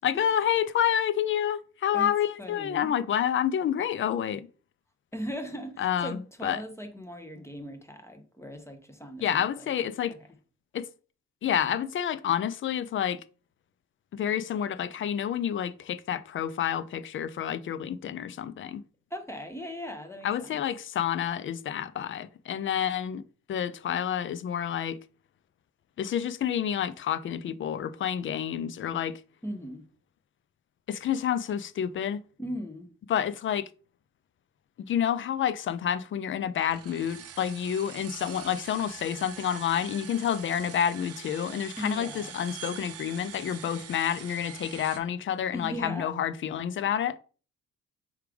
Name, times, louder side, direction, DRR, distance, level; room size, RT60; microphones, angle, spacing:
voice 1, 0.0-4.5 5.8-6.6 9.2-10.2 10.7-10.9 11.4-13.2 14.1-18.8 20.2-23.2 23.5-25.0 26.0-29.2 30.9-32.2 33.1-33.7 34.9-47.2, left 9 dB, 40° left, 0.4 m, -29 dB
voice 2, 2.4-2.9 5.1-9.5 19.1-20.6 29.4-29.8 32.4-32.9 41.8-42.3 45.5-46.2, equal, 10° left, 0.8 m, -38 dB
sound 1, 36.6-45.0, right 8 dB, 50° right, 0.6 m, -44 dB
4.8 x 3.3 x 3.4 m
cardioid pair, 90°, 30 cm